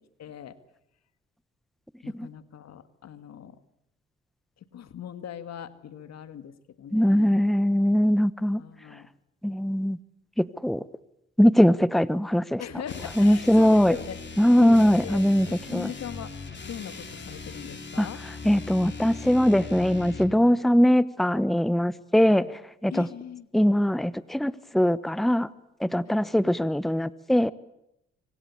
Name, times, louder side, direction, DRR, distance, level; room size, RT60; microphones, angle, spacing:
voice 1, 0.2-0.6 2.0-3.6 4.6-7.4 8.6-9.1 12.6-14.2 14.6-16.3 16.6-18.2 20.4-20.6 22.2-22.5 22.9-23.5 26.1-26.2, left 9 dB, 60° left, 12 dB, 1.9 m, -40 dB
voice 2, 6.9-8.6 9.4-10.0 10.4-10.8 11.4-12.6 13.2-14.0 14.4-15.9 18.0-18.1 18.4-22.5 22.8-23.1 23.5-25.5 25.8-27.5, equal, ahead, 17 dB, 1.1 m, -21 dB
sound 1, 12.8-20.4, left 4 dB, 40° left, 4.0 m, -40 dB
25.5 x 25.5 x 8.5 m, 0.83 s
hypercardioid pair, 45°, 29 cm